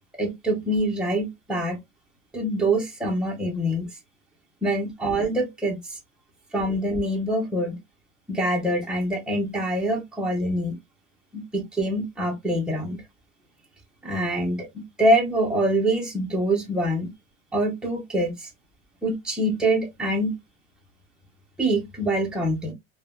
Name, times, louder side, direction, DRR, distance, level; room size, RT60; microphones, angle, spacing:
voice 1, 0.2-1.8 2.3-3.9 4.6-5.8 6.5-7.8 8.3-10.8 11.3-13.0 14.0-14.7 15.0-17.1 17.5-18.5 19.0-20.4 21.6-22.7, right 1 dB, 5° right, 0.5 m, -25 dB
3.2 x 2.1 x 2.2 m
cardioid pair, 170°, 31 cm